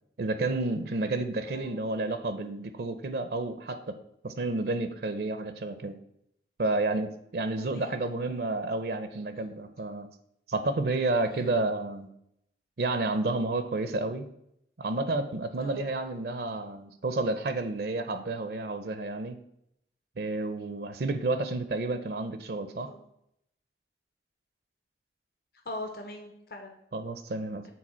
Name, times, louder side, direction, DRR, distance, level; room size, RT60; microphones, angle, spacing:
voice 1, 0.2-3.8 4.2-5.9 6.6-10.1 10.5-12.1 12.8-14.2 14.8-19.4 20.2-22.9 26.9-27.7, right 2 dB, 60° right, 10 dB, 0.5 m, -30 dB
voice 2, 1.5-1.8 7.6-8.0 11.2-11.6 15.6-15.9 22.8-23.0 25.6-26.7, left 1 dB, 55° left, 3 dB, 0.9 m, -42 dB
7.4 x 4.0 x 4.3 m, 0.77 s
head